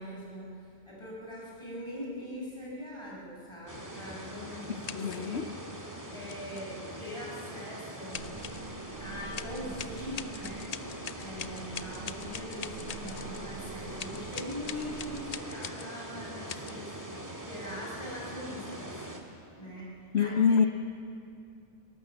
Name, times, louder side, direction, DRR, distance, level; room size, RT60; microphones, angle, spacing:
voice 1, 0.0-5.5 6.1-8.3 9.0-10.7 11.2-19.0 19.5-20.7, equal, 25° left, -5 dB, 6.3 m, -42 dB
sound 1, 3.7-19.2, right 1 dB, 15° right, 2.0 m, -43 dB
sound 2, 4.8-5.3 6.3-6.7 8.1-8.7 9.3-13.5 14.0-15.9 16.5-16.7, left 7 dB, 45° left, 0.6 m, -43 dB
voice 2, 4.9-5.5 20.1-20.7, left 6 dB, 70° left, 10 dB, 1.0 m, -25 dB
sound 3, 8.1-15.2, right 5 dB, 35° right, 0.6 m, -47 dB
23.0 x 18.5 x 7.3 m, 2.4 s
omnidirectional pair, 1.2 m